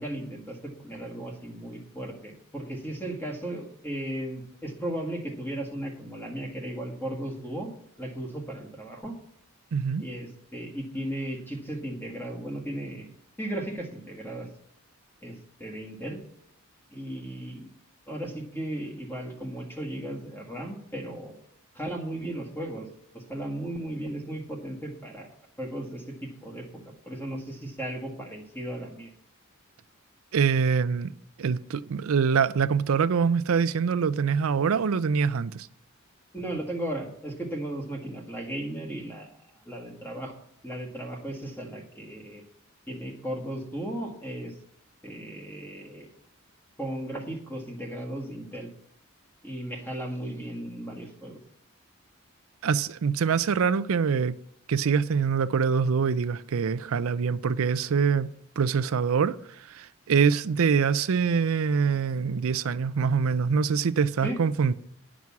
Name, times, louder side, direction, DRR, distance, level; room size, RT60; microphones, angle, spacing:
voice 1, 0.0-7.7 8.0-9.1 10.0-13.1 13.4-14.5 15.2-16.2 16.9-17.7 18.1-21.4 21.7-22.9 23.1-25.3 25.6-29.1 36.3-40.3 40.6-42.4 42.9-44.5 45.0-46.1 46.8-48.7 49.4-51.4 64.2-64.4, right 1 dB, 10° left, 1.8 m, -36 dB
voice 2, 9.7-10.0 30.3-31.1 31.4-35.7 52.6-54.4 54.7-58.3 58.6-64.7, right 6 dB, 70° right, 0.4 m, -24 dB
9.5 x 6.1 x 7.1 m
head